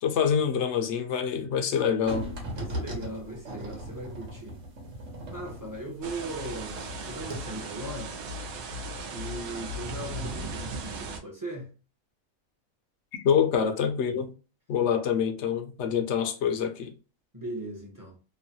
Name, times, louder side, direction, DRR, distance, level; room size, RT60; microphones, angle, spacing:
voice 1, 0.0-2.3 13.2-14.3 14.7-16.9, left 7 dB, 65° left, 0.8 m, -26 dB
sound 1, 2.1-6.9 7.2-7.3, right 1 dB, 65° right, 1.3 m, -38 dB
voice 2, 2.5-4.6 5.3-8.1 9.1-11.7 17.3-18.2, right 1 dB, 20° right, 0.6 m, -38 dB
sound 2, 6.0-11.2, right 2 dB, 85° right, 1.1 m, -37 dB
3.1 x 2.2 x 2.6 m
omnidirectional pair, 1.5 m